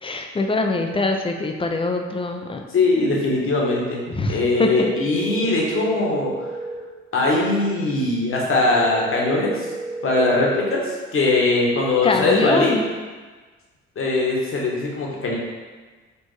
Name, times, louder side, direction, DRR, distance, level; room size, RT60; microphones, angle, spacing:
voice 1, 0.0-2.6 4.1-4.9 12.0-12.8, left 3 dB, 20° left, 3 dB, 0.4 m, -23 dB
voice 2, 2.7-6.3 7.1-9.7 10.0-12.8 14.0-15.4, left 2 dB, 45° left, -3 dB, 1.1 m, -21 dB
sound 1, 4.7-6.8 8.7-10.8, right 2 dB, 80° right, 1.0 m, -32 dB
4.4 x 2.4 x 3.2 m, 1.4 s
supercardioid pair, 70°, 30 cm